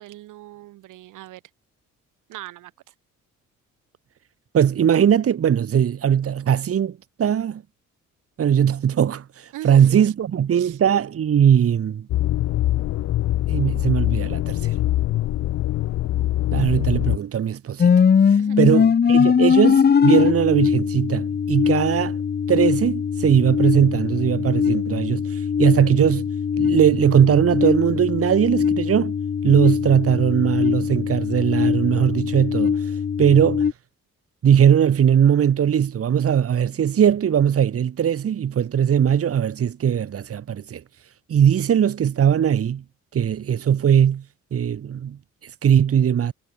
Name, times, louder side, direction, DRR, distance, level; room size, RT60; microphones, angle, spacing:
voice 1, 0.0-1.4 2.3-2.9 9.5-10.1 10.6-10.8 18.4-18.6, right 16 dB, 85° right, 2.2 m, -39 dB
voice 2, 4.5-7.6 8.4-12.1 13.5-14.7 16.5-17.9 18.3-22.2 22.5-26.3 26.6-29.1 29.4-32.9 33.2-33.7 34.4-40.8 41.3-42.8 43.1-44.2 44.5-46.3, right 9 dB, 50° right, 1.6 m, -19 dB
sound 1, 12.1-17.2, left 14 dB, 60° left, 0.5 m, -23 dB
sound 2, 17.8-33.7, left 6 dB, 35° left, 0.9 m, -21 dB
cardioid pair, 90°, 30 cm